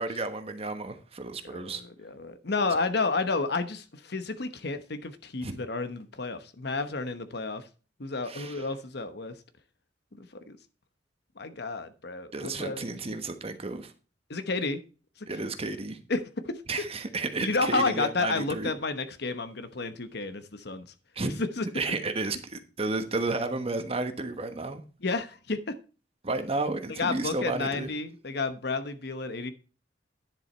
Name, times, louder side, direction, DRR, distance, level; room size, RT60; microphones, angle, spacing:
voice 1, 0.0-1.8 5.4-5.6 8.2-8.7 12.3-13.9 15.3-16.0 16.7-18.7 21.2-21.4 21.7-24.8 26.2-27.9, right 3 dB, 35° right, 8 dB, 1.2 m, -32 dB
voice 2, 1.5-7.6 8.0-9.3 10.2-10.6 11.4-12.8 14.3-14.8 16.1-16.2 16.5-16.6 17.4-20.9 21.4-21.6 25.0-25.8 27.0-29.5, left 3 dB, 65° left, 10 dB, 1.1 m, -31 dB
10.5 x 7.1 x 4.4 m, 0.35 s
head